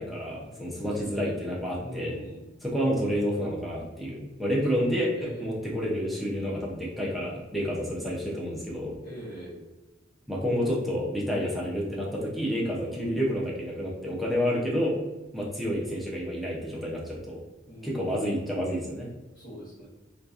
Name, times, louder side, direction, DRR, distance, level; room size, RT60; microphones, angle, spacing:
voice 1, 0.0-2.2 2.6-9.0 10.3-15.0 15.3-17.4 17.8-19.1, equal, ahead, -4 dB, 0.5 m, -29 dB
voice 2, 0.8-1.3 1.8-2.5 4.7-5.5 7.7-8.0 9.0-9.6 12.8-13.2 17.7-18.3 19.3-19.9, equal, 45° left, -10 dB, 1.0 m, -43 dB
2.7 x 2.3 x 2.4 m, 1.1 s
head